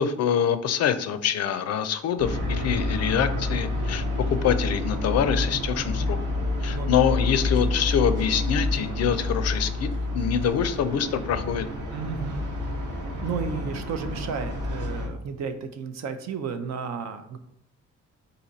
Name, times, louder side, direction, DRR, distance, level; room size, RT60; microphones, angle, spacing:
voice 1, 0.0-6.2 6.6-9.9 10.1-11.7, left 8 dB, 55° left, 11 dB, 0.4 m, -25 dB
sound 1, 2.2-15.1, left 2 dB, 80° right, 1.2 m, -28 dB
voice 2, 6.7-7.0 11.9-12.4 13.2-17.4, right 5 dB, 60° right, 9 dB, 0.6 m, -33 dB
4.2 x 2.7 x 3.9 m, 0.80 s
cardioid pair, 90°, 30 cm